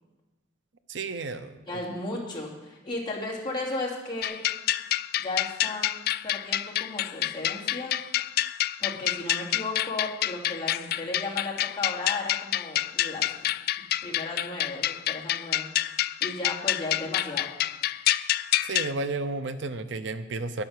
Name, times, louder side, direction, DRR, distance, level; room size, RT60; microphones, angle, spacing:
voice 1, 0.9-1.6 18.6-20.6, right 3 dB, 70° right, 11 dB, 0.6 m, -32 dB
voice 2, 1.7-4.4 5.2-5.9 6.2-7.9 8.8-13.3 14.0-15.7 16.2-17.5, left 2 dB, 25° left, -5 dB, 2.8 m, -35 dB
sound 1, 4.2-18.9, left 13 dB, 55° left, 0.3 m, -28 dB
10.5 x 10.0 x 6.6 m, 1.1 s
head